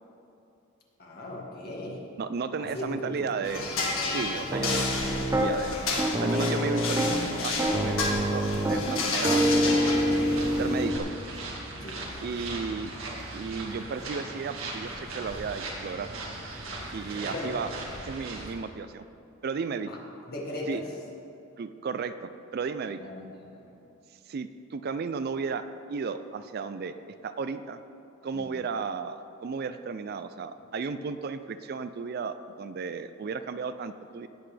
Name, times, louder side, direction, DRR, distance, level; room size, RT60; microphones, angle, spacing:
voice 1, 1.0-2.1 2.6-3.4 11.8-12.3 17.2-17.5 19.9-20.0 20.3-20.9 22.8-23.7 28.3-28.6, left 1 dB, 50° left, -2 dB, 1.9 m, -38 dB
voice 2, 2.2-3.7 4.1-5.8 6.2-9.7 10.5-11.1 12.2-12.9 13.3-16.1 16.9-17.7 18.0-19.0 19.4-19.9 20.7-20.8 21.6-23.0 24.3-25.6 25.9-26.9 27.2-27.8 28.2-34.3, right 5 dB, 50° right, 11 dB, 0.4 m, -34 dB
sound 1, 3.4-10.9, left 3 dB, 75° left, 1.7 m, -31 dB
Piano, 4.5-5.5 6.0-7.2 7.6-11.0, equal, 15° right, 0.7 m, -26 dB
sound 2, 9.5-18.5, right 2 dB, 75° right, 1.8 m, -38 dB
17.5 x 8.1 x 3.3 m, 2.7 s
head